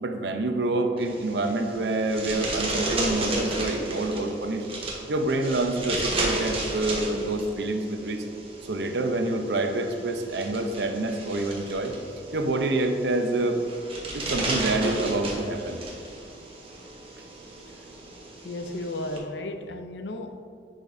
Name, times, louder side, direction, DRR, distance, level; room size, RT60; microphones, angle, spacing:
voice 1, 0.0-4.7 5.1-8.2 8.7-12.0 12.3-13.6 14.1-15.8, right 2 dB, 75° right, 5 dB, 0.7 m, -27 dB
sound 1, 1.0-19.2, right 2 dB, 30° right, 1.1 m, -34 dB
voice 2, 18.4-20.4, left 1 dB, 80° left, 7 dB, 0.5 m, -34 dB
10.0 x 5.1 x 2.6 m, 2.6 s
head